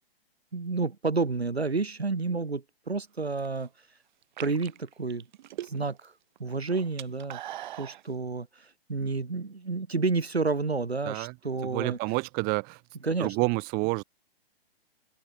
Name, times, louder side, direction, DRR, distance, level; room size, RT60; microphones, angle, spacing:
voice 1, 0.5-3.7 4.4-5.3 5.6-6.1 6.4-7.4 7.8-12.0 13.0-13.4, right 4 dB, 85° right, 3.5 m, -30 dB
sound 1, 3.2-3.6 4.2-6.1 6.4-8.0, right 13 dB, 50° right, 7.8 m, -41 dB
voice 2, 11.6-12.8 13.2-14.0, right 29 dB, 30° right, 2.6 m, -29 dB
open air
figure-of-eight pair, 125°, 31 cm